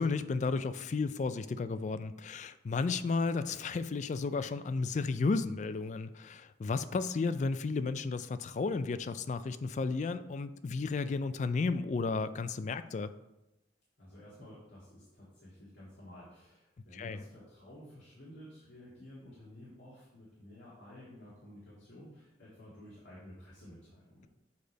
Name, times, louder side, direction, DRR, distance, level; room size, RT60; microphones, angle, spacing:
voice 1, 0.0-13.1 16.9-17.2, left 4 dB, 40° left, 13 dB, 0.3 m, -33 dB
voice 2, 14.0-24.3, left 1 dB, 80° left, -8 dB, 1.9 m, -52 dB
8.1 x 3.3 x 5.2 m, 0.94 s
head